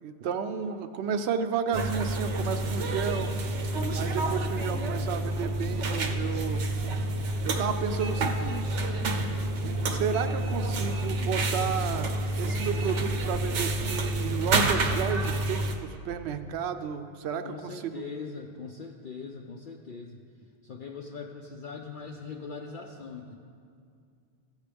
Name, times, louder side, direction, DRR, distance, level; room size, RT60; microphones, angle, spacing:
voice 1, 0.0-3.3 3.9-6.7 7.4-8.7 9.9-18.1, right 7 dB, 70° right, 9 dB, 0.8 m, -32 dB
sound 1, 1.7-15.8, right 2 dB, 85° right, 1.1 m, -29 dB
voice 2, 17.4-20.2 20.6-23.4, left 4 dB, 55° left, 1 dB, 0.6 m, -41 dB
14.5 x 8.1 x 3.4 m, 2.3 s
omnidirectional pair, 1.2 m